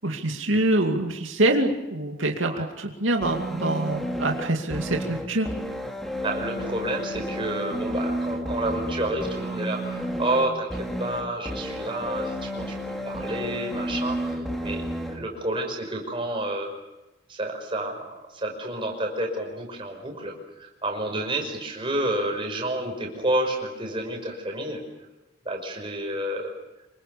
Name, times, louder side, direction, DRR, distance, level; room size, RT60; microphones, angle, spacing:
voice 1, 0.0-5.5, right 1 dB, 85° right, 2 dB, 2.5 m, -25 dB
sound 1, 3.2-15.2, equal, ahead, 2.6 m, -31 dB
voice 2, 6.2-14.3 14.6-16.7 17.3-20.3 20.6-24.8 25.5-26.5, right 1 dB, 25° right, 2 dB, 5.7 m, -30 dB
26.5 x 24.0 x 7.0 m, 1.0 s
head